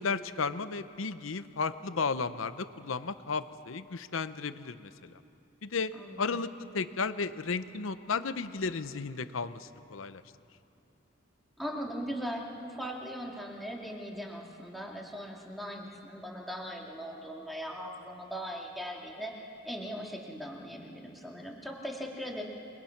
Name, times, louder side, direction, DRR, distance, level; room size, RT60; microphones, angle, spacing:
voice 1, 0.0-5.2 5.6-5.9 6.2-10.2, left 4 dB, 90° left, 12 dB, 0.8 m, -34 dB
voice 2, 6.0-6.4 11.6-22.4, equal, ahead, -2 dB, 2.4 m, -39 dB
28.0 x 21.5 x 5.9 m, 2.7 s
head